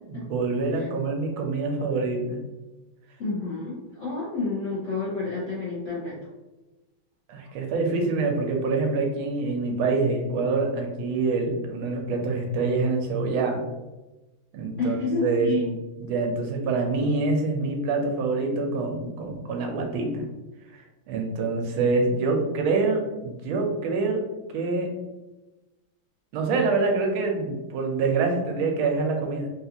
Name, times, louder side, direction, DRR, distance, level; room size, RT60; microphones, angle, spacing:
voice 1, 0.1-2.4 7.3-13.6 14.5-15.0 15.2-15.5 16.0-20.2 21.1-24.2 24.5-24.9 26.3-29.5, right 3 dB, 85° right, 2 dB, 1.5 m, -25 dB
voice 2, 3.2-6.2 14.8-15.8, left 3 dB, 65° left, -7 dB, 0.7 m, -29 dB
3.8 x 2.4 x 2.8 m, 1.1 s
omnidirectional pair, 2.2 m